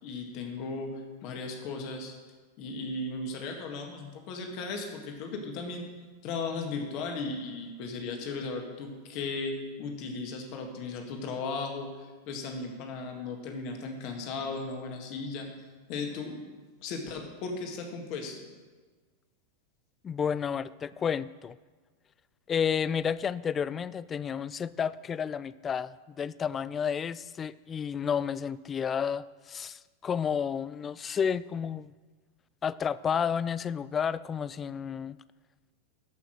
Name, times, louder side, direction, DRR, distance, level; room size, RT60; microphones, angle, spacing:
voice 1, 0.0-2.1 2.6-5.8 6.2-15.5 15.9-16.5 16.8-18.5, left 3 dB, 40° left, 3 dB, 1.9 m, -36 dB
voice 2, 20.0-21.6 22.5-31.9 32.6-35.2, left 7 dB, 20° left, 18 dB, 0.3 m, -31 dB
13.5 x 5.9 x 6.4 m, 1.4 s
figure-of-eight pair, 90°, 0 cm